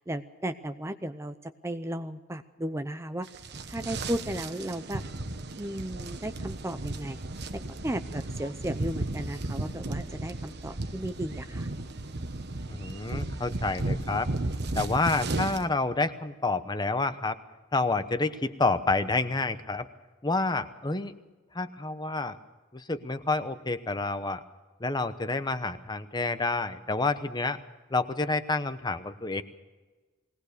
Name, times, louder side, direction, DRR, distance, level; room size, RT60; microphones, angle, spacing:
voice 1, 0.0-3.3 3.7-5.0 5.6-7.2 7.5-11.7, right 1 dB, 15° right, 10 dB, 0.6 m, -35 dB
sound 1, 3.3-15.6, right 2 dB, 60° right, 1.2 m, -35 dB
voice 2, 12.7-14.3 14.8-17.4 17.7-19.9 20.2-21.1 21.5-22.4 22.7-24.4 24.8-27.6 27.9-29.4, left 3 dB, 20° left, 11 dB, 0.9 m, -29 dB
21.0 x 18.5 x 6.7 m, 1.3 s
head